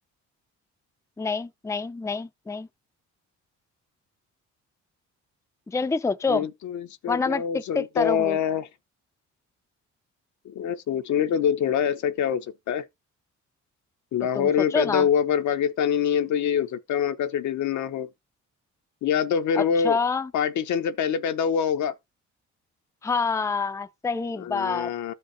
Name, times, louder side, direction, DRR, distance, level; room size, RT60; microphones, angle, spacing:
voice 1, 1.2-2.7 5.7-6.5 7.1-8.4 14.3-15.1 19.6-20.3 23.0-25.1, left 4 dB, 10° left, 0.5 m, -27 dB
voice 2, 6.3-8.7 10.4-12.8 14.1-18.1 19.0-20.0 20.3-21.9 24.4-25.1, left 8 dB, 70° left, 0.9 m, -25 dB
13.5 x 4.9 x 2.6 m
cardioid pair, 90°, 30 cm